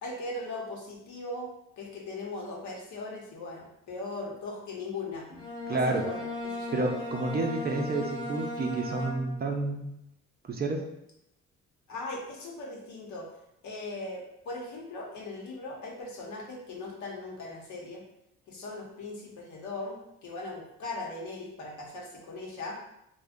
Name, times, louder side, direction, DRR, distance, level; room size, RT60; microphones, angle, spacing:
voice 1, 0.0-5.2 5.7-6.8 11.9-13.3 13.6-18.0 18.5-22.8, left 2 dB, 75° left, -2 dB, 0.9 m, -39 dB
Bowed string instrument, 5.3-9.6, left 2 dB, 15° left, 0.8 m, -36 dB
voice 2, 5.7-6.0 6.7-9.9 10.5-10.8, right 3 dB, 35° right, 2 dB, 0.4 m, -30 dB
2.4 x 2.2 x 3.5 m, 0.83 s
cardioid pair, 90°, 30 cm